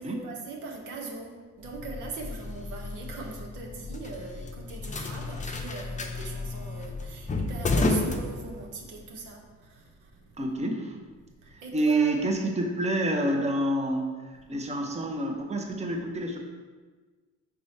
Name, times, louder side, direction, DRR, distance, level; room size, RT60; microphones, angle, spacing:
voice 1, 0.0-10.4 11.4-12.2, right 3 dB, 90° right, 0 dB, 1.1 m, -41 dB
sound 1, 1.6-9.0, left 2 dB, 25° left, 0.6 m, -32 dB
voice 2, 10.4-11.0 11.5-16.4, right 1 dB, 20° right, 2 dB, 0.8 m, -28 dB
4.9 x 4.7 x 4.3 m, 1.4 s
cardioid pair, 90°, 30 cm